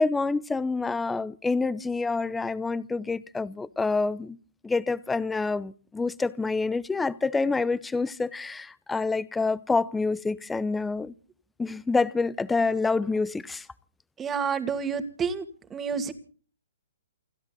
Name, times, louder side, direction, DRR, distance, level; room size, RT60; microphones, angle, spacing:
voice 1, 0.0-4.4 4.6-11.1 11.6-13.7, left 3 dB, 10° left, 0.8 m, -27 dB
voice 2, 14.2-15.4 15.7-16.1, right 6 dB, 15° right, 2.3 m, -29 dB
29.5 x 10.5 x 4.0 m
figure-of-eight pair, 120°, 0 cm